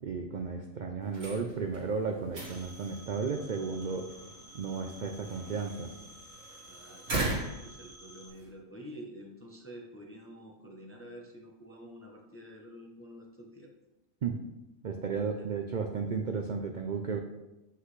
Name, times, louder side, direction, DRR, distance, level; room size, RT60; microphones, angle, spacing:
voice 1, 0.0-4.1 4.5-5.9 14.2-14.4 14.8-17.2, right 5 dB, 60° right, 4 dB, 0.5 m, -34 dB
sound 1, 1.0-8.5, right 2 dB, 75° right, 2.3 m, -40 dB
Telephone, 2.4-8.3, right 1 dB, 25° right, 1.0 m, -52 dB
voice 2, 6.7-7.1 7.6-13.7 15.4-15.5, equal, 15° left, 0 dB, 0.6 m, -48 dB
7.8 x 5.6 x 3.2 m, 0.98 s
omnidirectional pair, 1.4 m